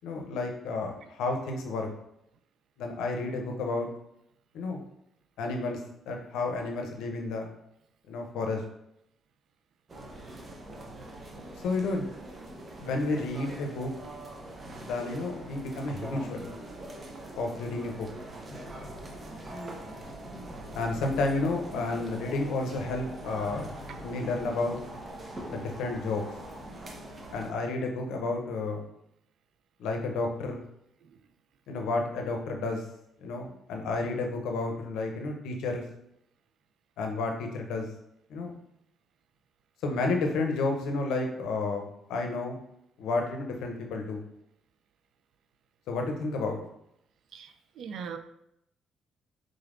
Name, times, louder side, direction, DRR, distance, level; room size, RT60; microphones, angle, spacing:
voice 1, 0.0-1.9 2.8-3.9 4.5-4.8 5.4-5.8 6.1-7.5 8.1-8.6 11.6-12.1 12.8-13.9 14.8-16.4 17.4-18.1 20.7-23.7 24.0-24.8 25.5-26.3 27.3-28.8 29.8-30.6 31.7-32.8 33.2-35.8 37.0-37.9 38.3-38.5 39.8-41.8 42.1-42.6 43.0-44.2 45.9-46.6, left 3 dB, 85° left, 3 dB, 0.6 m, -31 dB
sound 1, 9.9-27.5, right 1 dB, 35° right, 0.7 m, -43 dB
sound 2, 18.5-26.7, left 1 dB, 10° left, 1.0 m, -46 dB
voice 2, 47.3-48.2, right 6 dB, 70° right, 9 dB, 0.3 m, -40 dB
3.8 x 3.3 x 2.5 m, 0.79 s
cardioid pair, 90°, 0 cm